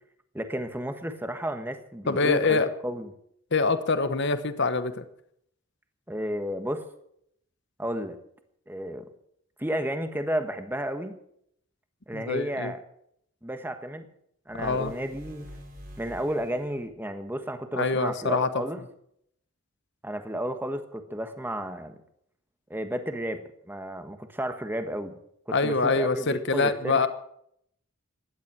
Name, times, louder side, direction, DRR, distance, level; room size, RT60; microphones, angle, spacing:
voice 1, 0.3-3.1 6.1-6.8 7.8-8.2 8.7-9.0 9.6-11.2 12.1-12.8 13.4-14.1 14.5-15.5 16.0-18.8 20.0-21.9 22.7-25.2 25.5-27.1, equal, 10° right, 7 dB, 1.3 m, -32 dB
voice 2, 2.1-2.7 3.5-5.0 12.1-12.7 14.6-14.9 17.8-18.6 25.5-27.1, left 3 dB, 55° left, 11 dB, 1.1 m, -25 dB
sound 1, 14.5-16.9, equal, 40° right, 3.8 m, -46 dB
17.0 x 12.0 x 6.2 m, 0.71 s
head